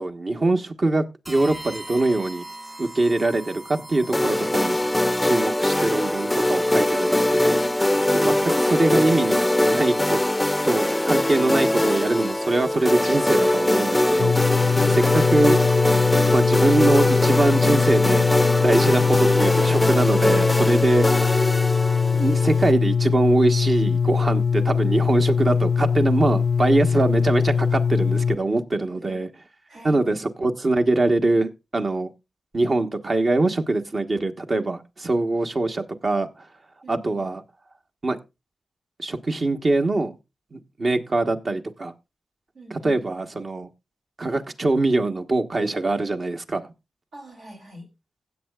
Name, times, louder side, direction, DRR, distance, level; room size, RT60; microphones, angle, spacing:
voice 1, 0.0-2.4 2.8-4.8 5.2-7.6 8.1-10.2 10.6-14.4 14.9-15.6 16.3-18.3 18.6-21.1 22.1-29.3 29.8-32.1 32.5-36.3 36.9-37.4 38.0-38.2 39.0-40.1 40.5-41.9 42.7-43.7 44.2-46.7, right 2 dB, 50° right, 1.2 m, -23 dB
sound 1, 1.2-12.6, right 1 dB, 25° right, 1.8 m, -42 dB
sound 2, 4.1-22.7, left 1 dB, 15° left, 0.4 m, -22 dB
sound 3, 14.2-28.4, left 6 dB, 75° left, 0.4 m, -22 dB
voice 2, 29.7-30.0 36.8-37.2 42.5-43.0 47.1-47.9, right 1 dB, 85° right, 3.3 m, -43 dB
16.0 x 8.2 x 2.4 m
cardioid pair, 45°, 0 cm